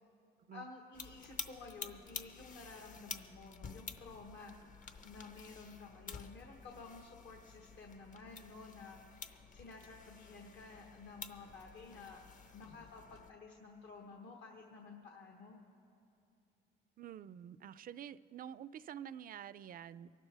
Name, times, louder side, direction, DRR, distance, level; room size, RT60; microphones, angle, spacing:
voice 1, 0.5-4.5 5.0-12.2 12.5-15.6, left 4 dB, 65° left, 1 dB, 1.3 m, -52 dB
sound 1, 0.9-13.3, left 5 dB, 40° left, 0.7 m, -50 dB
voice 2, 17.0-20.1, right 9 dB, 45° right, 16 dB, 0.4 m, -48 dB
24.0 x 12.0 x 3.4 m, 2.6 s
cardioid pair, 90°, 20 cm